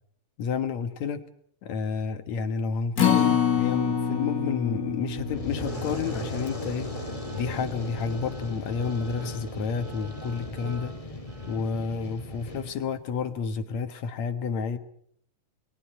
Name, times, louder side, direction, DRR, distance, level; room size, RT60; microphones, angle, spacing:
voice 1, 0.4-1.2 1.6-6.9 7.3-10.9 11.5-14.8, left 6 dB, 65° left, 9 dB, 2.6 m, -30 dB
Acoustic guitar, 3.0-9.3 9.7-9.8 10.2-10.3, left 7 dB, 45° left, 1.2 m, -28 dB
Fire, 5.1-12.7, left 2 dB, 10° left, 2.4 m, -37 dB
sound 1, 5.7-11.6, right 5 dB, 65° right, 4.8 m, -49 dB
29.5 x 22.5 x 4.4 m, 0.66 s
omnidirectional pair, 3.5 m